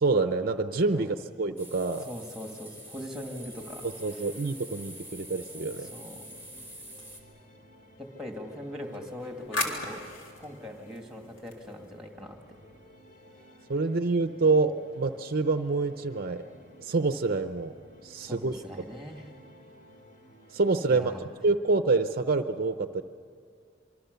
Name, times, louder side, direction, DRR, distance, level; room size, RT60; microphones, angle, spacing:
voice 1, 0.0-2.1 4.0-5.9 13.7-16.4 16.8-17.7 18.0-18.6 18.9-19.0 20.5-23.0, right 3 dB, 50° right, 9 dB, 0.6 m, -27 dB
sound 1, 1.6-7.2, right 1 dB, 15° left, 3.4 m, -46 dB
voice 2, 2.1-3.9 5.9-6.2 8.0-10.0 10.4-12.4 18.2-19.3 20.9-21.2, left 1 dB, ahead, 3 dB, 2.4 m, -41 dB
sound 2, 2.9-21.2, equal, 40° left, 3.0 m, -54 dB
sound 3, 4.7-6.5 8.8-12.1, left 2 dB, 75° left, 3.5 m, -39 dB
26.0 x 24.0 x 6.9 m, 2.1 s
head